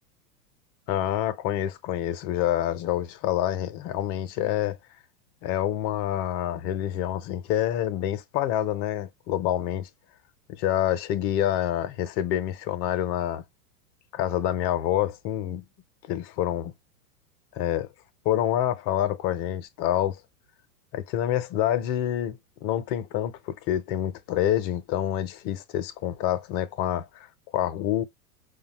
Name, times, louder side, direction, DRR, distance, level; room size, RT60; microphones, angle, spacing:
voice 1, 0.9-4.8 5.4-9.9 10.5-13.4 14.1-15.6 16.1-16.7 17.5-17.9 18.2-20.2 20.9-27.3 27.5-28.0, left 12 dB, 40° left, 0.6 m, -27 dB
4.9 x 2.2 x 2.9 m
hypercardioid pair, 110°, 50 cm